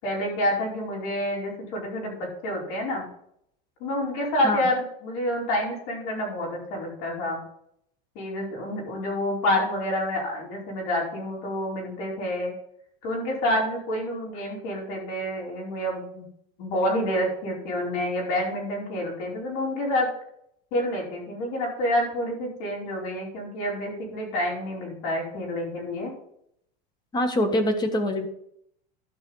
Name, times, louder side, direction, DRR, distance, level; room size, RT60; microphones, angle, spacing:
voice 1, 0.0-3.1 3.8-7.4 8.1-12.5 13.0-16.2 16.6-20.1 20.7-26.1, left 1 dB, 65° left, -2 dB, 4.9 m, -28 dB
voice 2, 27.1-28.3, left 1 dB, 20° left, 7 dB, 1.5 m, -24 dB
13.0 x 5.6 x 5.5 m, 0.73 s
supercardioid pair, 135°, 21 cm